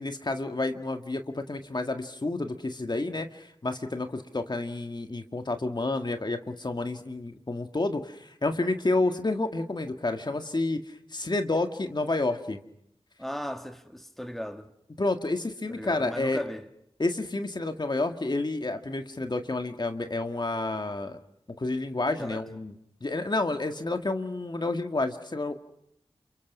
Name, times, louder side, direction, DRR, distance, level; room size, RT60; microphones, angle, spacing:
voice 1, 0.0-12.6 15.0-16.4 17.0-21.2 21.6-22.7 23.0-25.5, left 2 dB, 45° left, 1.8 m, -30 dB
voice 2, 13.2-14.7 15.7-16.7 22.2-22.4, equal, ahead, 1.8 m, -36 dB
29.0 x 27.5 x 6.1 m
wide cardioid pair, 80°, 11 cm